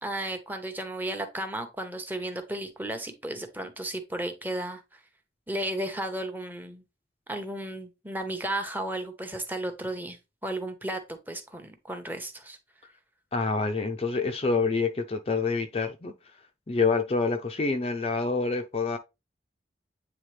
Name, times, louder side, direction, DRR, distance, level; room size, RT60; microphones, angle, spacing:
voice 1, 0.0-5.0 5.5-6.8 7.3-10.2 10.4-12.6, right 1 dB, 10° right, 0.9 m, -34 dB
voice 2, 13.3-16.1 16.7-19.0, left 4 dB, 35° left, 0.5 m, -27 dB
8.9 x 3.5 x 3.2 m
head